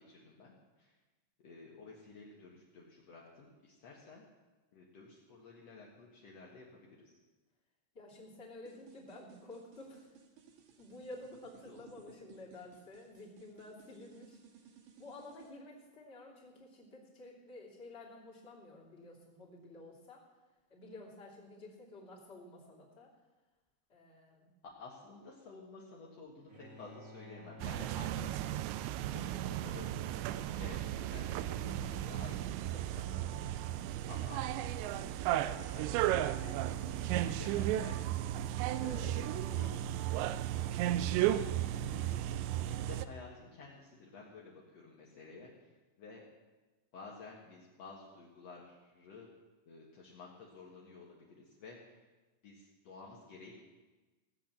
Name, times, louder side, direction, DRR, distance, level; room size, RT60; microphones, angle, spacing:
voice 1, 0.1-0.9 1.4-4.3 4.7-7.1 11.7-11.8 24.8-28.3 29.1-29.9 30.3-38.0 38.8-39.2 39.6-39.7 41.0-41.2 41.8-42.2 42.6-46.3 46.9-49.3 49.6-52.0 52.4-53.6, left 3 dB, 75° left, -3 dB, 1.5 m, -52 dB
voice 2, 7.9-10.2 10.8-14.4 15.0-20.2 20.7-23.1 23.9-24.5 26.5-26.6 38.8-39.8, left 2 dB, 20° left, -5 dB, 2.2 m, -51 dB
sound 1, 8.7-15.5, right 7 dB, 65° right, 2.4 m, -60 dB
Bowed string instrument, 26.5-33.3, left 1 dB, 30° right, 1.5 m, -56 dB
sound 2, 27.6-43.1, right 12 dB, 85° right, 2.5 m, -34 dB
17.0 x 8.0 x 7.2 m, 1.2 s
omnidirectional pair, 5.5 m